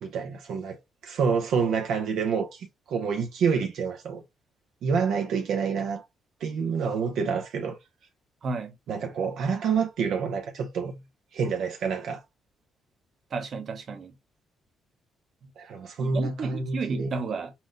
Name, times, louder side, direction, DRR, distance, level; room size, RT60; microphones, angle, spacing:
voice 1, 0.0-4.2 4.8-6.0 6.4-7.8 8.9-10.9 11.3-12.2 15.6-17.1, right 5 dB, 80° right, 0.6 m, -28 dB
voice 2, 8.4-8.7 13.3-14.1 16.0-17.5, right 4 dB, 50° right, 0.9 m, -32 dB
5.6 x 2.1 x 2.6 m
cardioid pair, 90°, 0 cm